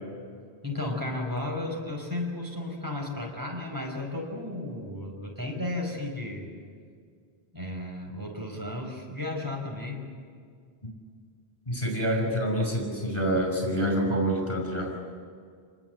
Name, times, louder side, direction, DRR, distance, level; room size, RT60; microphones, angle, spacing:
voice 1, 0.6-6.5 7.5-10.0, left 2 dB, 20° right, 1 dB, 5.1 m, -34 dB
voice 2, 11.7-14.9, equal, 30° left, 0 dB, 5.5 m, -27 dB
28.0 x 20.0 x 8.0 m, 2.1 s
omnidirectional pair, 1.1 m